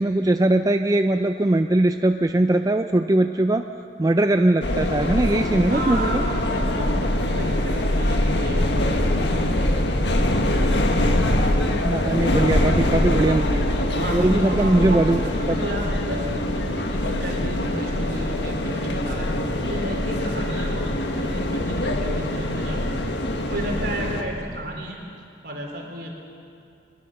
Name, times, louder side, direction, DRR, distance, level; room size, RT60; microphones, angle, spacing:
voice 1, 0.0-3.6 4.0-6.2 11.8-13.6 14.1-15.6, right 1 dB, 20° right, 7 dB, 0.4 m, -20 dB
sound 1, 4.6-24.2, left 1 dB, 75° left, 1.7 m, -23 dB
voice 2, 5.7-9.1 13.9-19.3 19.6-20.9 21.1-23.0 23.5-25.0 25.4-26.1, right 1 dB, 60° right, 0 dB, 3.8 m, -33 dB
21.5 x 21.0 x 6.6 m, 2.5 s
head